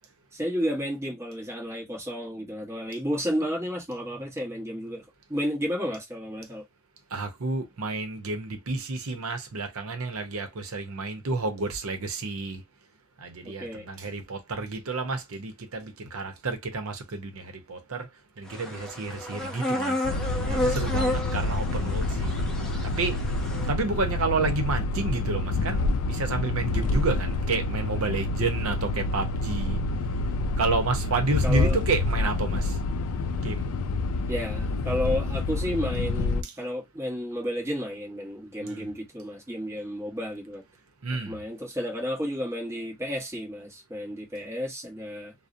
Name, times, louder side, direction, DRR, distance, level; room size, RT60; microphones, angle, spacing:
voice 1, 0.3-5.0 5.3-6.6 13.4-13.9 31.4-31.8 34.3-40.6 41.2-45.3, equal, 15° right, 1.0 m, -32 dB
voice 2, 7.1-12.6 13.2-18.1 18.4-20.0 20.5-22.4 22.8-23.2 23.7-29.8 30.6-32.8 33.4-33.7 36.4-36.5 38.6-38.9 41.0-41.4, right 3 dB, 75° right, 0.7 m, -30 dB
sound 1, 18.5-23.7, left 1 dB, 5° left, 0.5 m, -31 dB
sound 2, 20.0-36.4, left 2 dB, 85° left, 0.3 m, -28 dB
2.6 x 2.0 x 2.5 m
head